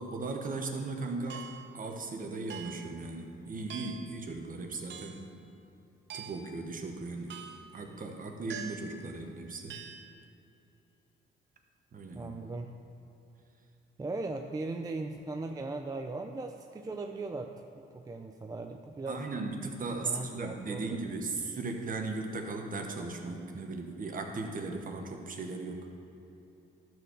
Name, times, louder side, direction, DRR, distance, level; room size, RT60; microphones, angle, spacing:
voice 1, 0.0-5.2 6.1-7.4 7.7-9.8 11.9-12.3 19.1-25.9, right 3 dB, 45° right, 3 dB, 1.2 m, -37 dB
sound 1, 1.3-1.8 2.5-2.9 3.7-4.2 4.9-5.3 6.1-6.6 7.3-7.7 8.5-9.0 9.7-10.1, right 7 dB, 65° right, 0.7 m, -44 dB
voice 2, 12.1-12.7 14.0-19.2 19.9-21.1, right 3 dB, 20° right, 4 dB, 0.5 m, -38 dB
12.0 x 4.5 x 6.5 m, 3.0 s
cardioid pair, 90°, 20 cm